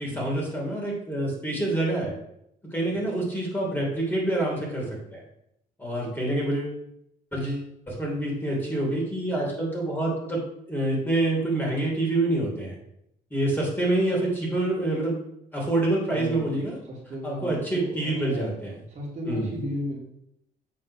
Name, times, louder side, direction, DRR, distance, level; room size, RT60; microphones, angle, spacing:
voice 1, 0.0-2.1 2.6-5.2 5.8-6.8 7.3-10.4 10.7-12.7 13.3-15.2 15.5-16.8 17.2-18.7 19.2-19.6, right 2 dB, 10° left, -3 dB, 3.3 m, -27 dB
voice 2, 16.1-18.5 18.9-20.0, equal, 45° right, -3 dB, 2.8 m, -35 dB
7.8 x 4.4 x 6.0 m, 0.77 s
cardioid pair, 110°, 17 cm